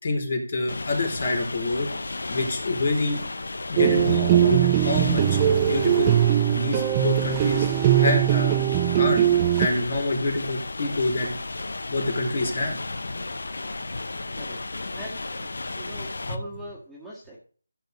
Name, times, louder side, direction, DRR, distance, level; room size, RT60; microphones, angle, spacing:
voice 1, 0.0-1.9 2.3-3.2 3.7-6.2 6.5-7.7 8.0-8.6 8.9-9.2 9.6-11.4 11.9-12.7, left 2 dB, 45° left, 2 dB, 3.6 m, -26 dB
sound 1, 0.7-16.4, left 2 dB, 70° left, 0.9 m, -34 dB
sound 2, 3.8-9.7, right 12 dB, 15° right, 0.4 m, -21 dB
voice 2, 14.3-15.5 15.8-17.4, right 1 dB, ahead, -9 dB, 1.9 m, -41 dB
15.0 x 6.9 x 3.2 m, 0.43 s
figure-of-eight pair, 170°, 0 cm